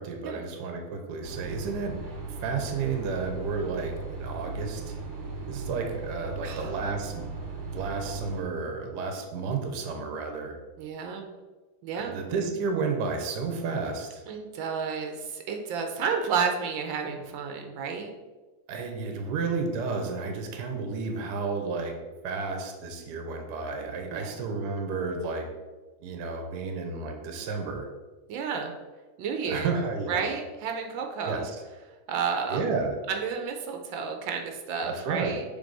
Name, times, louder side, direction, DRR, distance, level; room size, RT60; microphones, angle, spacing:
voice 1, 0.0-2.0 2.4-3.9 4.2-4.9 5.5-7.2 7.7-10.6 11.9-14.2 18.7-21.9 22.2-25.5 26.0-27.9 29.5-30.3 31.2-31.5 32.5-33.0 34.8-35.4, right 4 dB, 65° right, 4 dB, 1.3 m, -32 dB
sound 1, 1.2-8.4, right 3 dB, 45° right, 1.1 m, -37 dB
voice 2, 10.8-11.3 11.8-12.2 14.3-18.1 24.1-24.4 28.3-28.7 29.2-29.7 30.1-31.4 32.1-32.6 33.1-35.4, right 6 dB, 85° right, 4 dB, 1.5 m, -31 dB
6.9 x 3.4 x 4.0 m, 1.3 s
omnidirectional pair, 2.0 m